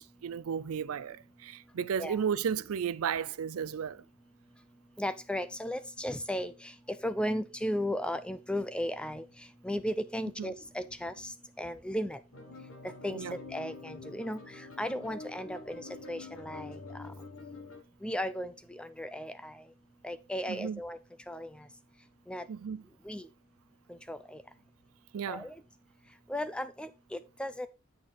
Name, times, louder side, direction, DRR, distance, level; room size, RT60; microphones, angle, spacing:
voice 1, 0.0-4.0 10.4-10.5 13.1-13.4 20.5-20.8 22.5-22.8 25.1-25.5, right 7 dB, 80° right, 0.4 m, -34 dB
voice 2, 5.0-9.2 9.6-11.3 11.6-12.2 13.0-16.8 18.0-19.5 20.0-21.0 21.3-21.5 22.3-22.4 23.1-23.3 24.1-24.4 25.3-25.5 26.3-27.7, equal, 5° left, 0.4 m, -35 dB
sound 1, 12.3-17.8, left 3 dB, 70° left, 1.4 m, -46 dB
9.1 x 4.3 x 4.5 m
head